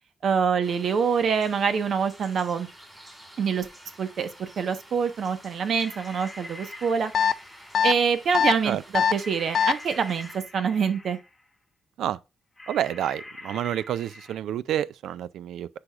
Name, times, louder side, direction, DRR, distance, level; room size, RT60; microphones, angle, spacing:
voice 1, 0.2-2.7 3.4-3.7 4.0-7.1 7.8-11.2, right 6 dB, 60° right, 1.1 m, -25 dB
sound 1, 0.6-10.4, right 1 dB, 5° right, 4.6 m, -50 dB
sound 2, 5.7-8.1 9.1-11.5 12.6-14.4, left 2 dB, 15° left, 1.8 m, -44 dB
sound 3, 7.1-7.3 7.7-7.9 8.3-8.5 8.9-9.1 9.5-9.7, left 8 dB, 55° left, 0.4 m, -21 dB
voice 2, 12.7-15.7, right 11 dB, 90° right, 0.4 m, -29 dB
9.8 x 4.9 x 2.4 m
cardioid pair, 100°, 0 cm